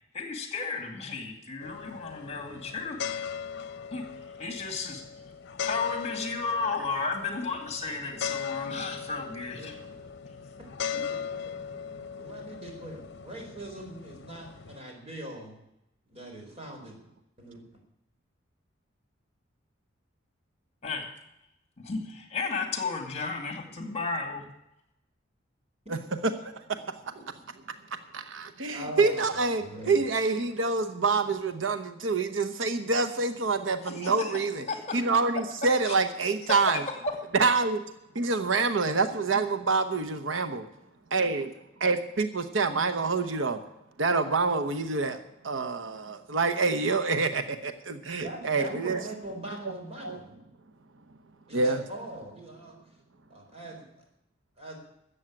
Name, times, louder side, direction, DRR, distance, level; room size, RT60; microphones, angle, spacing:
voice 1, 0.1-3.0 3.9-4.0 4.4-5.0 5.6-9.7 20.8-21.0 21.8-24.4 33.8-35.0 35.9-37.1, left 4 dB, 35° left, 4 dB, 2.4 m, -33 dB
sound 1, 1.6-14.8, left 7 dB, 60° left, 0.9 m, -38 dB
voice 2, 12.1-15.6 16.1-17.0 17.4-17.6 28.7-30.1 48.2-50.3 51.5-52.8 53.3-53.9 54.6-54.8, right 1 dB, 35° right, 1 dB, 4.3 m, -42 dB
voice 3, 26.4-26.8 28.1-34.6 34.9-36.8 37.3-37.8 38.1-40.6 41.1-41.5 41.8-43.6 44.0-45.2 45.4-49.0 50.0-50.2 51.5-51.8, right 4 dB, 75° right, 10 dB, 0.9 m, -27 dB
13.5 x 8.1 x 8.9 m, 0.84 s
head